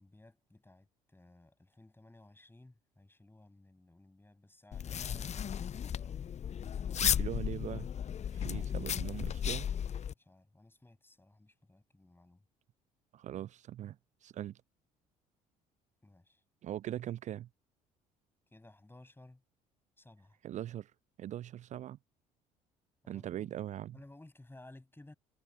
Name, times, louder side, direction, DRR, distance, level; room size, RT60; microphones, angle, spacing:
voice 1, 0.0-6.2 8.3-8.7 10.2-12.4 16.0-16.4 18.5-19.4 20.0-20.4 23.0-23.5 23.9-25.1, left 2 dB, 10° left, 8.0 m, -58 dB
sound 1, 4.7-10.1, left 8 dB, 35° left, 0.9 m, -35 dB
voice 2, 7.0-7.9 8.3-9.7 13.1-14.0 14.2-14.6 16.6-17.5 20.4-20.9 21.2-22.0 23.1-24.0, right 12 dB, 40° right, 0.4 m, -41 dB
figure-of-eight pair, 55°, 20 cm